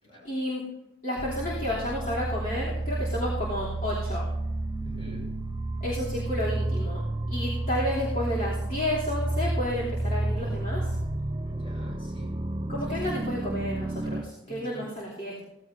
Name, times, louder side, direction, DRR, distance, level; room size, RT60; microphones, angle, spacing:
voice 1, 0.2-0.7 1.0-4.3 5.8-7.0 7.3-10.9 12.7-15.4, left 1 dB, 45° left, -8 dB, 3.0 m, -31 dB
sound 1, 1.2-14.2, right 1 dB, 25° right, 0.5 m, -31 dB
voice 2, 4.8-5.3 11.5-12.4 12.8-13.1 14.4-14.9, equal, 30° left, -2 dB, 5.2 m, -45 dB
16.0 x 15.5 x 2.7 m, 0.95 s
head